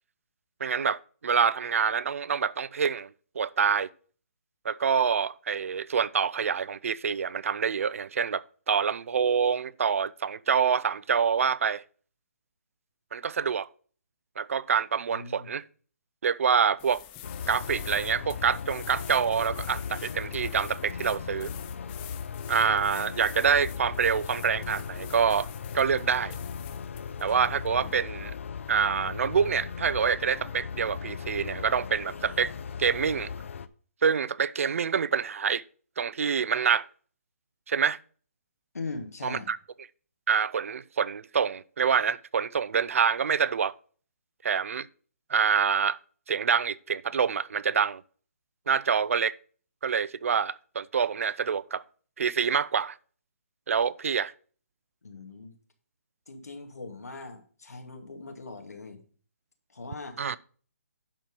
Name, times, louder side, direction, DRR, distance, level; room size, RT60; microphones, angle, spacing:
voice 1, 0.6-3.9 4.6-11.8 13.1-13.7 14.4-15.6 16.2-17.0 17.5-21.5 22.5-25.5 25.7-26.4 27.2-28.3 28.7-32.5 32.8-33.3 34.0-35.6 36.0-36.9 37.7-38.0 39.2-39.6 40.3-43.7 44.4-44.9 45.3-46.0 46.3-48.0 48.7-49.4 49.8-51.8 52.2-53.0 53.7-54.3 60.2-60.4, right 6 dB, 60° right, 0.5 m, -26 dB
voice 2, 15.1-15.5 38.7-39.5 55.0-55.6 56.3-59.0 59.7-60.2, left 3 dB, 85° left, 2.3 m, -40 dB
sound 1, 16.8-28.0, left 11 dB, 15° left, 0.5 m, -47 dB
sound 2, 17.2-33.7, left 6 dB, 55° left, 0.7 m, -38 dB
10.5 x 4.4 x 5.3 m
hypercardioid pair, 155°, 8 cm